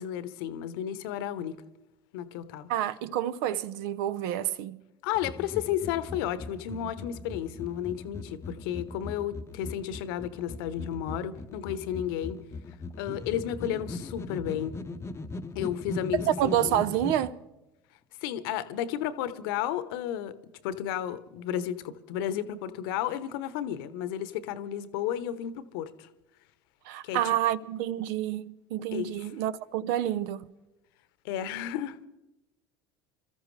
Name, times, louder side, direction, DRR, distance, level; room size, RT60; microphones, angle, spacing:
voice 1, 0.0-1.6 2.1-2.7 5.0-12.4 13.0-14.7 15.5-16.8 18.2-20.3 20.6-26.1 27.0-27.3 28.9-29.3 31.2-32.1, left 10 dB, 65° left, 1.0 m, -33 dB
voice 2, 2.7-4.8 16.2-17.4 26.9-30.4, right 11 dB, 65° right, 0.7 m, -28 dB
sound 1, 5.2-17.3, left 3 dB, 20° left, 0.8 m, -40 dB
27.5 x 14.0 x 3.3 m
hypercardioid pair, 75°, 12 cm